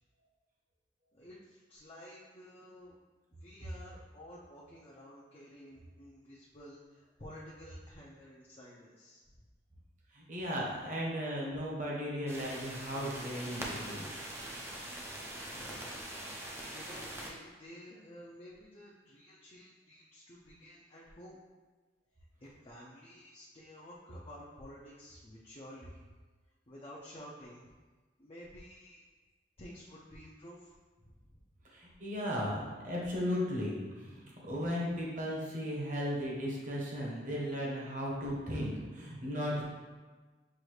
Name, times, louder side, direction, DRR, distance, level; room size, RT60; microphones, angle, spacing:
voice 1, 1.1-2.9 3.4-9.2 15.5-16.0 16.7-21.4 22.4-26.0 26.7-27.7 28.2-29.0 29.6-31.4, equal, 30° left, -6 dB, 0.6 m, -52 dB
voice 2, 10.1-14.2 31.6-39.6, equal, 45° right, -4 dB, 1.1 m, -36 dB
sound 1, 12.3-17.3, right 1 dB, 15° right, 0.5 m, -43 dB
6.3 x 2.6 x 3.2 m, 1.3 s
head